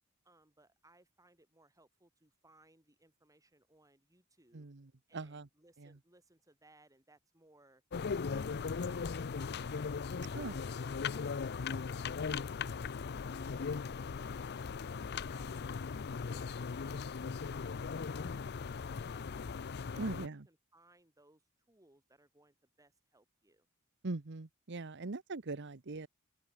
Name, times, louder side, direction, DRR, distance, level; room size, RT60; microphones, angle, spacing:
voice 1, 0.2-4.7 5.1-7.8 8.2-9.9 10.2-14.7 15.2-18.6 18.9-19.6 20.0-23.7, right 2 dB, 15° right, 7.6 m, -66 dB
voice 2, 4.5-5.5 5.8-6.0 10.3-10.6 20.0-20.4 24.0-26.1, right 3 dB, 55° right, 1.0 m, -41 dB
sound 1, 7.9-20.3, left 5 dB, 50° left, 0.5 m, -38 dB
open air
head